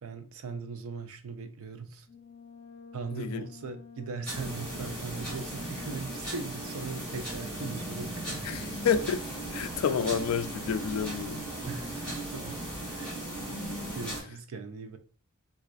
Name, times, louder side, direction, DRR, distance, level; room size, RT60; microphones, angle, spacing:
voice 1, 0.0-2.1 2.9-8.6 11.6-13.2 13.9-15.0, right 4 dB, 70° right, 0.4 m, -40 dB
Brass instrument, 2.1-6.4, left 5 dB, 45° left, 1.0 m, -50 dB
voice 2, 3.1-3.5 8.4-9.2 9.5-11.4, left 7 dB, 75° left, 0.3 m, -29 dB
sound 1, 4.2-14.2, right 1 dB, 5° left, 1.2 m, -37 dB
3.9 x 2.4 x 2.4 m
head